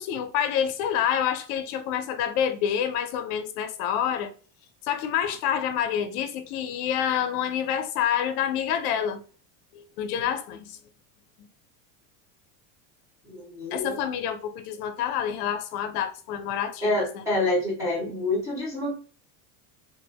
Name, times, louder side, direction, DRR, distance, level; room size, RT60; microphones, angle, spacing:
voice 1, 0.0-4.3 4.8-9.2 9.7-10.8 13.7-17.2, left 9 dB, 65° left, 0.5 m, -27 dB
voice 2, 13.2-14.0 16.8-18.9, left 2 dB, 5° right, 0.4 m, -27 dB
2.5 x 2.0 x 2.7 m
cardioid pair, 165°, 49 cm